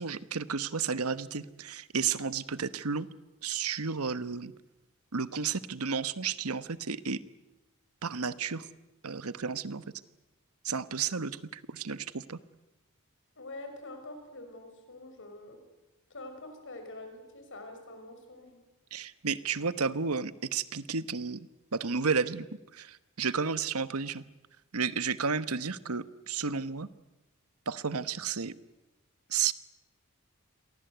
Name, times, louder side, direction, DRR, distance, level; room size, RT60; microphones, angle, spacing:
voice 1, 0.0-3.1 3.4-4.5 5.1-7.2 8.0-8.7 9.0-9.8 10.6-12.4 18.9-22.5 22.7-24.2 24.7-26.9 27.7-28.5 29.3-29.5, right 5 dB, 85° right, 14 dB, 1.2 m, -32 dB
voice 2, 13.4-15.6 16.1-18.6, left 2 dB, 60° left, 6 dB, 6.2 m, -45 dB
29.5 x 23.0 x 8.1 m, 0.98 s
head